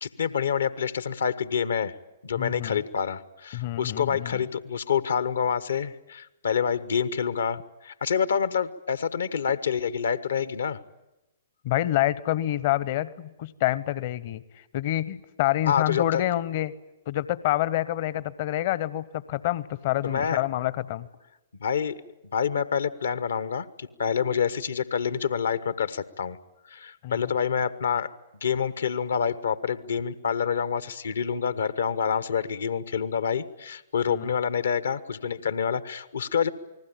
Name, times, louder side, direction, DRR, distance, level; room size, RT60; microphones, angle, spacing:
voice 1, 0.0-1.9 2.2-10.8 15.7-16.2 20.0-20.4 21.6-22.0 22.3-26.4 26.7-28.1 28.4-36.5, left 7 dB, 65° left, 15 dB, 1.2 m, -27 dB
voice 2, 2.4-2.8 3.5-4.4 11.6-14.4 14.7-16.7 17.1-21.1 27.0-27.3 34.1-34.3, left 14 dB, 45° left, 19 dB, 1.0 m, -27 dB
28.5 x 20.0 x 8.8 m, 0.98 s
figure-of-eight pair, 110°, 0 cm